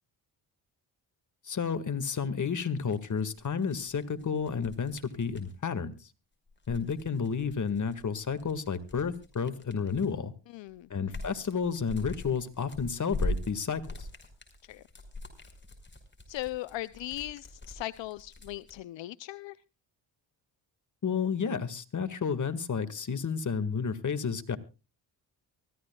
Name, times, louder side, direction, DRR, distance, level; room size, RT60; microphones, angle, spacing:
voice 1, 1.5-6.0 6.7-10.3 10.9-14.1 21.0-24.6, left 6 dB, 40° left, 11 dB, 1.9 m, -31 dB
sound 1, 2.8-5.5 6.5-10.2 10.7-18.7, left 1 dB, 25° left, 5.4 m, -41 dB
voice 2, 10.5-10.9 14.6-14.8 16.3-19.6, left 16 dB, 75° left, 16 dB, 0.6 m, -38 dB
24.0 x 14.5 x 2.3 m, 0.31 s
cardioid pair, 70°, 45 cm